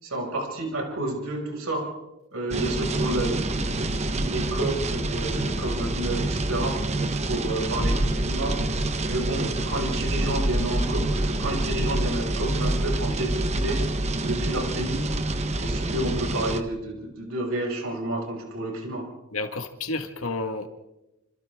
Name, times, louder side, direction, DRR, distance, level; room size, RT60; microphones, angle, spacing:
voice 1, 0.0-1.8 2.3-6.7 7.2-8.6 9.1-13.8 14.2-15.1 15.6-19.1, right 1 dB, 85° right, 0 dB, 5.9 m, -30 dB
sound 1, 2.5-16.6, right 1 dB, 30° right, 1.2 m, -27 dB
voice 2, 19.3-20.7, left 3 dB, 85° left, 6 dB, 1.8 m, -30 dB
28.0 x 27.0 x 3.7 m, 0.96 s
head